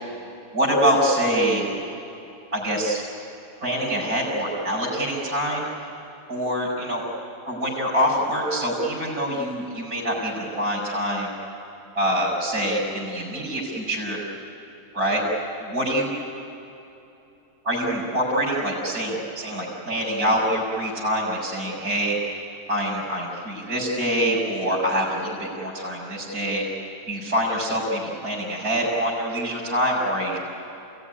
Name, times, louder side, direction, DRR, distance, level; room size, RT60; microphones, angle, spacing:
voice 1, 0.5-1.6 2.5-3.0 3.6-5.6 6.3-7.0 7.5-11.3 11.9-14.2 14.9-15.2 15.6-16.1 17.6-22.1 22.7-26.6 27.1-30.4, equal, 85° right, -6 dB, 5.3 m, -25 dB
28.0 x 17.5 x 9.9 m, 2.9 s
omnidirectional pair, 1.5 m